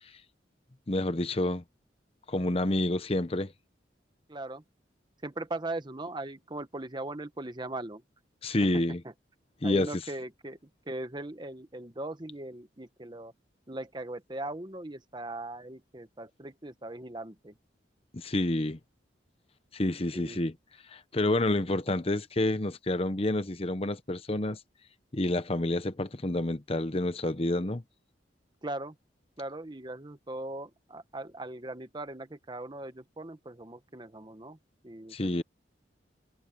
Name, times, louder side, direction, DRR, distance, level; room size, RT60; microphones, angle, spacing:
voice 1, 0.9-1.6 2.3-3.5 8.4-9.0 9.6-10.1 18.1-18.8 19.7-20.6 20.9-24.6 25.1-27.8 35.1-35.4, left 1 dB, 30° left, 0.9 m, -29 dB
voice 2, 4.3-4.6 5.2-8.0 9.6-10.6 10.9-13.3 13.7-17.5 20.1-20.4 28.6-28.9 29.4-34.6 34.8-35.4, right 2 dB, 25° right, 1.1 m, -39 dB
head